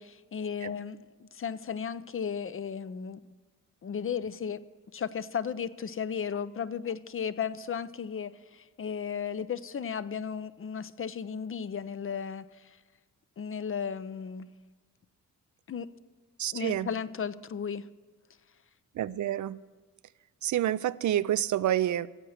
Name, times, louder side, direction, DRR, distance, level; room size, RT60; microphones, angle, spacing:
voice 1, 0.0-3.2 3.8-4.6 4.9-12.8 13.4-14.5 15.7-15.9 16.5-17.9, left 7 dB, 40° left, 0.6 m, -35 dB
voice 2, 16.4-16.9 18.9-19.6 20.4-22.1, right 12 dB, 60° right, 0.5 m, -28 dB
15.5 x 7.6 x 6.5 m
cardioid pair, 65°, 35 cm